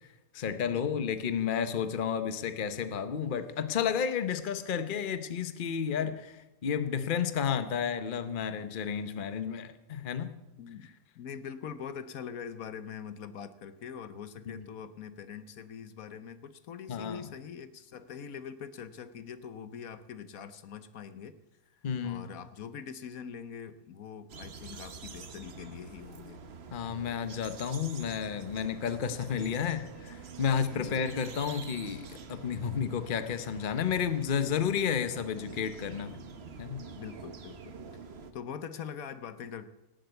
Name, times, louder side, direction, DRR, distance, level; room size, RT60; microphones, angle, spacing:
voice 1, 0.3-10.3 14.5-14.7 16.9-17.2 21.8-22.3 26.7-36.2 36.6-36.8, left 7 dB, 40° left, 10 dB, 1.0 m, -32 dB
voice 2, 10.6-21.4 21.7-26.4 30.7-31.0 37.0-37.8 38.3-39.7, left 7 dB, 75° left, 13 dB, 1.3 m, -43 dB
sound 1, 24.3-38.3, right 5 dB, 50° right, 1.2 m, -47 dB
18.0 x 7.8 x 8.1 m, 0.96 s
omnidirectional pair, 1.5 m